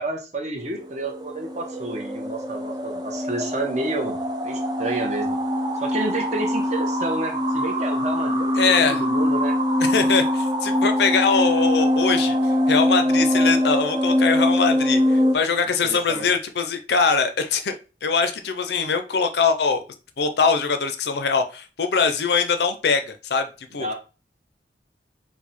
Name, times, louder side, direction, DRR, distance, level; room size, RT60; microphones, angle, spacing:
voice 1, 0.0-4.2 4.4-5.4 5.8-9.6 15.8-16.3 23.7-23.9, right 2 dB, 40° right, 3 dB, 1.0 m, -30 dB
sound 1, 0.7-15.4, left 1 dB, 25° right, 0.5 m, -23 dB
voice 2, 8.6-9.0 9.8-17.7 18.0-19.8 20.2-23.9, left 5 dB, 65° left, 8 dB, 0.5 m, -22 dB
4.6 x 2.2 x 4.1 m, 0.32 s
head